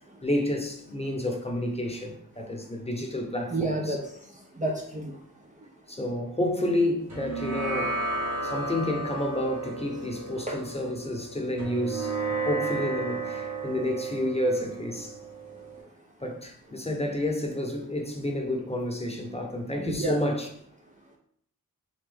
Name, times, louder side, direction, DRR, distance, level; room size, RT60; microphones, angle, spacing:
voice 1, 0.2-4.0 5.9-8.0 8.4-12.2 12.5-15.2 16.2-20.5, left 1 dB, 20° left, 0.9 m, -30 dB
voice 2, 3.5-4.0 4.6-5.1 10.5-10.6 19.8-20.2, right 2 dB, 20° right, 0.6 m, -29 dB
sound 1, 7.1-15.8, right 3 dB, 55° right, 1.4 m, -33 dB
3.8 x 3.1 x 3.4 m
cardioid pair, 45°, 34 cm